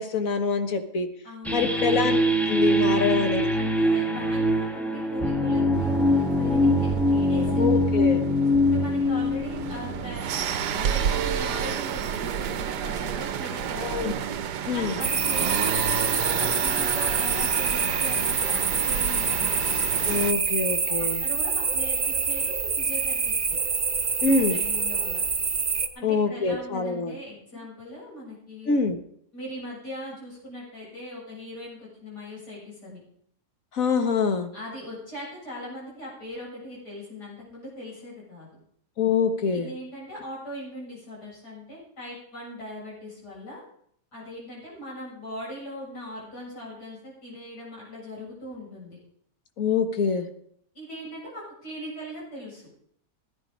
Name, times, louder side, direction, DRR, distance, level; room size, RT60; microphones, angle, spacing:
voice 1, 0.0-1.1 1.5-2.2 2.5-3.5 7.5-8.2 13.8-14.1 14.7-15.0 20.0-21.2 24.2-24.6 26.0-27.2 28.7-29.0 33.7-34.5 39.0-39.7 49.6-50.3, left 5 dB, 55° left, 7 dB, 1.7 m, -25 dB
voice 2, 1.2-2.0 2.9-3.2 3.6-7.6 8.6-10.3 10.7-14.2 14.7-19.6 21.0-23.6 24.2-25.2 25.9-28.7 29.3-33.0 34.5-38.5 39.5-43.6 44.1-49.0 50.7-52.7, equal, 80° left, -5 dB, 8.3 m, -40 dB
sound 1, 1.4-10.8, left 1 dB, ahead, 1.0 m, -23 dB
sound 2, 5.7-20.3, right 8 dB, 85° right, 1.5 m, -30 dB
sound 3, 15.0-25.9, right 5 dB, 35° right, 1.1 m, -26 dB
16.0 x 10.5 x 5.2 m, 0.67 s
omnidirectional pair, 1.7 m